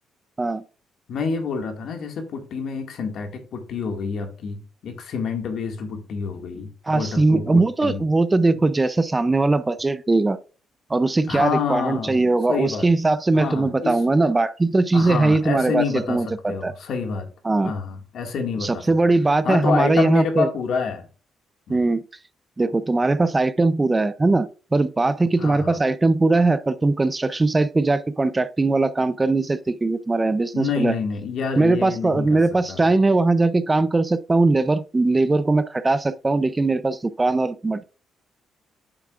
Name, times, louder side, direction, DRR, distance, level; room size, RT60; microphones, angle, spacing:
voice 1, 1.1-8.0 11.3-12.2 12.5-12.9 13.3-14.0 14.9-17.3 17.6-18.9 19.4-21.1 21.7-21.8 25.4-25.8 30.5-32.4 32.7-32.9, left 5 dB, 70° left, 2.0 m, -28 dB
voice 2, 6.9-10.4 10.9-16.7 17.4-17.7 18.6-20.5 21.7-22.0 22.6-30.9 31.6-37.8, right 3 dB, 20° right, 0.6 m, -20 dB
9.0 x 7.3 x 2.5 m
cardioid pair, 90°, 0 cm